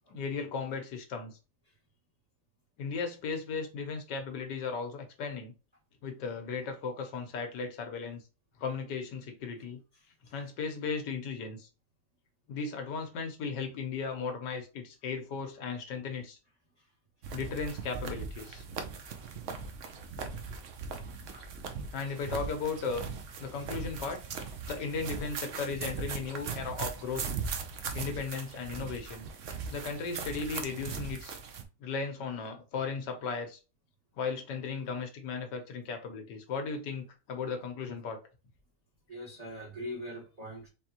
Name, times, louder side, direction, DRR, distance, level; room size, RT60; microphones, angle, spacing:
voice 1, 0.1-1.4 2.8-5.5 6.0-8.2 8.6-9.8 10.3-11.7 12.5-16.4 17.3-18.6 21.9-23.1 23.4-24.2 24.7-27.3 27.9-29.3 29.7-31.4 31.8-33.6 34.2-38.2, left 5 dB, 80° left, 1.6 m, -36 dB
sound 1, 17.2-31.6, right 5 dB, 60° right, 0.9 m, -39 dB
voice 2, 39.1-40.7, equal, 25° right, 1.1 m, -42 dB
4.4 x 3.5 x 2.9 m
omnidirectional pair, 1.8 m